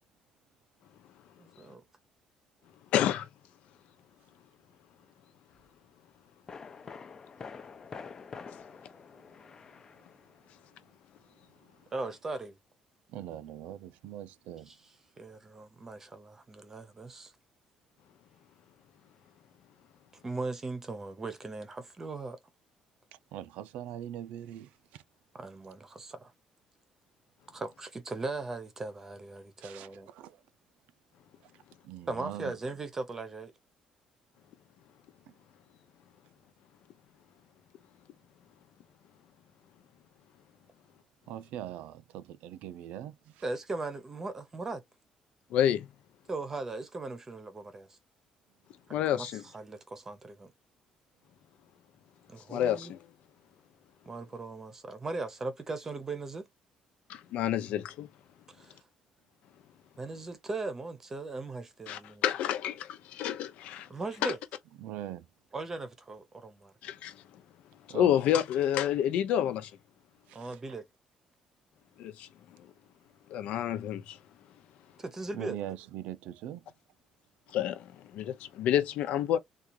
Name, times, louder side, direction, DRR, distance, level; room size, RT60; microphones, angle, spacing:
voice 1, 1.4-1.8 11.9-12.6 14.7-14.8 15.2-17.3 20.2-22.4 25.3-26.3 27.5-30.1 32.1-33.5 43.4-44.8 46.3-48.0 48.9-50.5 52.3-52.9 54.1-56.5 58.6-58.8 60.0-62.2 63.9-64.4 65.5-66.7 70.3-70.8 75.0-75.6, right 3 dB, 20° right, 0.8 m, -38 dB
voice 2, 2.9-3.3 45.5-45.9 48.9-49.4 52.5-53.1 57.1-58.1 61.9-63.9 64.2-64.3 66.8-67.2 67.9-69.7 72.0-72.3 73.3-74.2 77.5-79.4, left 10 dB, 70° left, 0.8 m, -29 dB
sound 1, 5.5-5.7 6.5-10.6 10.8-10.9, left 5 dB, 25° left, 0.5 m, -47 dB
voice 3, 13.1-14.7 23.1-25.0 29.6-30.4 31.4-31.5 31.8-32.5 41.3-43.4 64.8-65.3 67.9-68.1 70.3-70.6 75.3-76.6, right 12 dB, 85° right, 0.5 m, -42 dB
3.8 x 2.5 x 2.9 m
cardioid pair, 170°, 2 cm